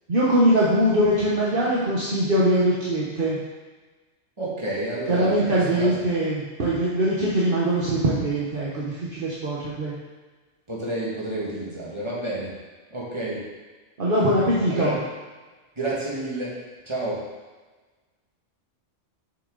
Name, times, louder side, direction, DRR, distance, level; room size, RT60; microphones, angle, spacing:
voice 1, 0.1-3.4 5.1-9.9 14.0-15.0, right 1 dB, 50° right, -7 dB, 1.3 m, -22 dB
voice 2, 4.4-6.0 10.7-12.6 12.9-13.5 14.7-15.0 15.8-16.6 16.9-17.3, right 1 dB, 25° right, -7 dB, 2.1 m, -30 dB
7.2 x 6.5 x 4.0 m, 1.3 s
omnidirectional pair, 1.2 m